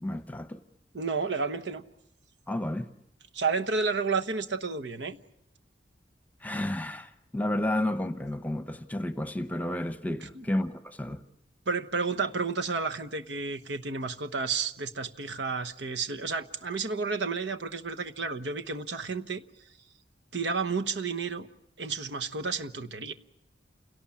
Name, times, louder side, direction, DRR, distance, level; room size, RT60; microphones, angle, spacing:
voice 1, 0.0-0.6 2.5-2.9 6.4-11.2, left 1 dB, 10° left, 0.9 m, -31 dB
voice 2, 0.9-1.8 3.3-5.2 10.3-10.4 11.7-19.4 20.3-21.5 21.8-23.1, right 4 dB, 75° right, 1.1 m, -31 dB
28.5 x 17.5 x 8.5 m
head